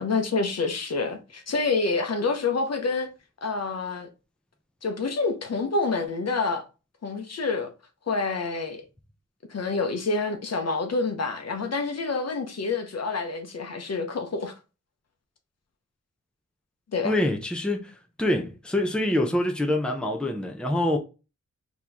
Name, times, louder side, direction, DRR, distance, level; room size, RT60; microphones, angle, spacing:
voice 1, 0.0-3.1 3.4-4.1 4.8-6.6 7.0-7.7 8.1-8.8 9.5-14.5 16.9-17.1, left 4 dB, 55° left, 0.9 m, -27 dB
voice 2, 17.0-17.9 18.2-21.0, left 1 dB, 5° left, 0.7 m, -25 dB
4.4 x 3.0 x 3.4 m
wide cardioid pair, 130°, 30 cm